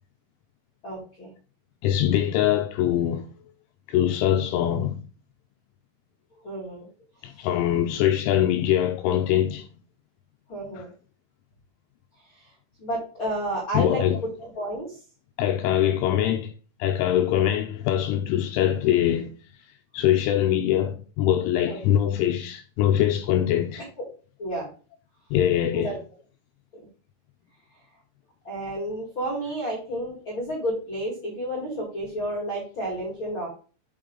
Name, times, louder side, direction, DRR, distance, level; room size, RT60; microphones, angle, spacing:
voice 1, 0.8-1.3 6.4-6.9 10.5-10.9 12.8-14.0 14.4-15.0 21.7-21.8 24.0-24.1 24.4-24.7 25.7-25.9 28.4-33.5, right 1 dB, 50° left, 1.5 m, -31 dB
voice 2, 1.8-3.3 3.9-5.0 7.2-9.7 10.8-10.9 13.7-14.2 15.4-16.5 16.8-19.3 19.9-23.9 25.3-26.0, left 11 dB, 80° left, 2.8 m, -23 dB
6.3 x 6.1 x 3.7 m
omnidirectional pair, 6.0 m